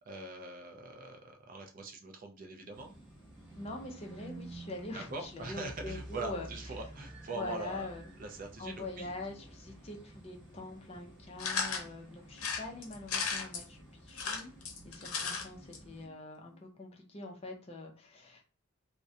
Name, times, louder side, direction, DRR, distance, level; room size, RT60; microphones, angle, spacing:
voice 1, 0.1-2.9 4.9-7.9 8.2-9.1, right 2 dB, 40° right, 4 dB, 0.3 m, -42 dB
sound 1, 2.7-16.1, right 1 dB, 5° right, 0.8 m, -51 dB
voice 2, 3.5-6.5 7.3-8.1 8.6-14.5 14.8-18.4, left 2 dB, 30° left, 2 dB, 0.4 m, -44 dB
sound 2, 11.4-11.9 12.4-13.6 14.1-15.4 15.7-15.8 16.0-16.1, left 5 dB, 80° left, 0.6 m, -35 dB
2.3 x 2.1 x 2.6 m, 0.36 s
head